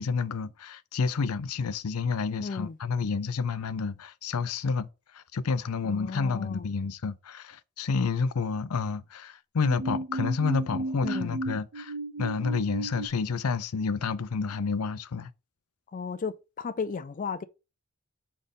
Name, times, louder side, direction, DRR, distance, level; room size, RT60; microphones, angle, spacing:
voice 1, 0.0-4.9 5.1-15.3, left 5 dB, 85° left, 0.5 m, -29 dB
voice 2, 2.4-2.7 5.8-6.7 11.0-11.4 15.9-17.4, left 5 dB, 35° left, 0.4 m, -34 dB
sound 1, 9.6-13.1, right 2 dB, 80° right, 0.6 m, -34 dB
4.9 x 4.3 x 5.3 m
head